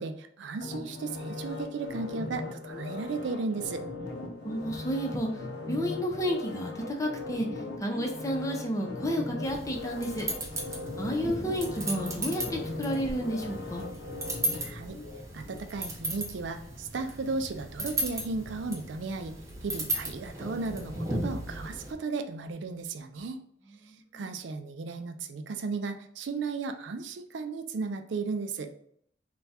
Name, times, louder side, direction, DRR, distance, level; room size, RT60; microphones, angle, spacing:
voice 1, 0.0-3.8 14.6-15.0 15.3-19.4 19.6-23.4 24.1-28.7, right 4 dB, 80° right, 7 dB, 0.4 m, -35 dB
sound 1, 0.6-15.7 16.1-16.2, left 3 dB, 65° left, 0.7 m, -39 dB
voice 2, 4.4-5.3 5.6-7.5 7.8-10.3 11.0-13.9 23.8-24.0, equal, 20° left, 1 dB, 0.6 m, -31 dB
sound 2, 9.4-21.9, right 1 dB, 15° right, 0.7 m, -36 dB
3.4 x 2.2 x 4.1 m, 0.65 s
head